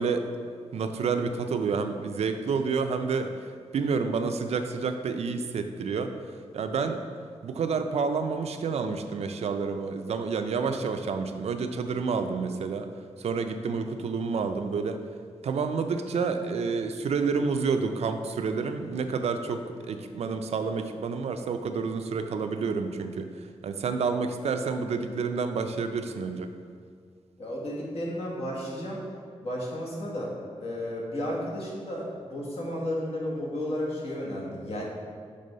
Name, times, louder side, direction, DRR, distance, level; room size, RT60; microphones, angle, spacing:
voice 1, 0.0-3.3 3.7-6.1 6.5-7.0 7.4-12.9 13.2-15.0 15.4-23.3 23.6-26.5, right 5 dB, 70° right, 7 dB, 0.4 m, -29 dB
voice 2, 27.4-29.0 29.4-30.3 30.6-34.8, left 1 dB, 60° left, -4 dB, 1.3 m, -33 dB
5.3 x 3.4 x 5.3 m, 2.1 s
wide cardioid pair, 145°, 11 cm